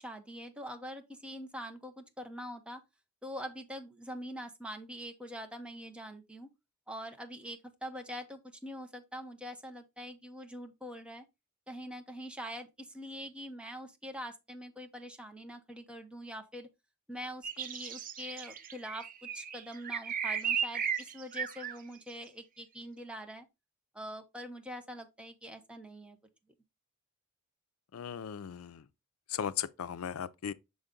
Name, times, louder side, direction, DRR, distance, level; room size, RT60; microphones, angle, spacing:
voice 1, 0.0-2.8 3.2-6.5 6.9-11.3 11.7-16.7 17.1-23.5 23.9-26.2, equal, 5° right, 0.8 m, -44 dB
sound 1, 17.4-21.8, right 7 dB, 40° right, 0.5 m, -35 dB
voice 2, 27.9-28.9 29.3-30.5, left 8 dB, 85° left, 0.4 m, -37 dB
6.5 x 3.9 x 3.7 m
head